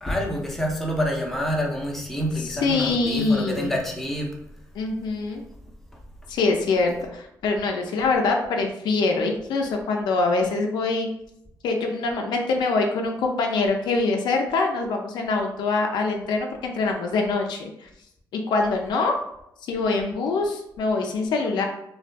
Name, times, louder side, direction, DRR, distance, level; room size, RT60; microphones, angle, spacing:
voice 1, 0.0-4.3, equal, 5° left, -1 dB, 0.6 m, -27 dB
voice 2, 2.4-3.8 4.7-5.4 6.3-11.1 11.6-17.9 18.3-19.1 19.7-21.7, left 3 dB, 80° left, 2 dB, 0.4 m, -24 dB
2.3 x 2.2 x 2.5 m, 0.79 s
cardioid pair, 80°, 7 cm